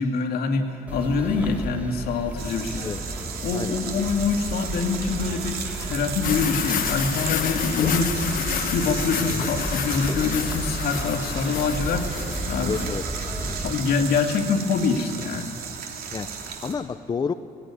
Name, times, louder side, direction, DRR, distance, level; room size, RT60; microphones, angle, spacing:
voice 1, 0.0-2.9 3.4-8.4 8.7-12.9 13.4-15.5, left 4 dB, 75° left, 4 dB, 2.2 m, -25 dB
sound 1, 0.9-13.7, equal, 10° right, 2.3 m, -33 dB
sound 2, 2.4-16.7, right 6 dB, 70° right, 2.7 m, -35 dB
sound 3, 6.2-13.0, left 9 dB, 60° left, 1.2 m, -30 dB
voice 2, 12.6-13.0 16.1-17.3, left 5 dB, 25° left, 10 dB, 0.6 m, -30 dB
18.0 x 16.5 x 9.8 m, 2.6 s
cardioid pair, 135°, 16 cm